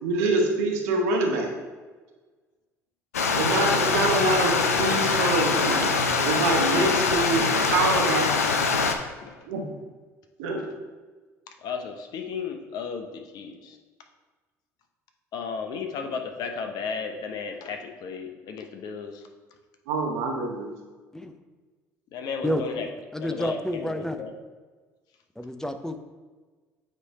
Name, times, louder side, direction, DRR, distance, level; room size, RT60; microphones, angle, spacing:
voice 1, 0.0-1.5 3.4-5.9 6.2-8.4 9.5-9.7 10.4-10.6 19.9-20.7, right 2 dB, 70° right, 2 dB, 1.0 m, -25 dB
Stream, 3.1-8.9, left 4 dB, 90° left, 0.5 m, -23 dB
voice 2, 11.6-13.8 15.3-19.2 22.1-22.9 23.2-24.3, left 5 dB, 60° left, 5 dB, 0.8 m, -34 dB
voice 3, 22.4-22.8 23.1-24.2 25.4-26.0, left 1 dB, 5° left, 8 dB, 0.6 m, -29 dB
8.5 x 3.2 x 4.2 m, 1.3 s
hypercardioid pair, 60°, 8 cm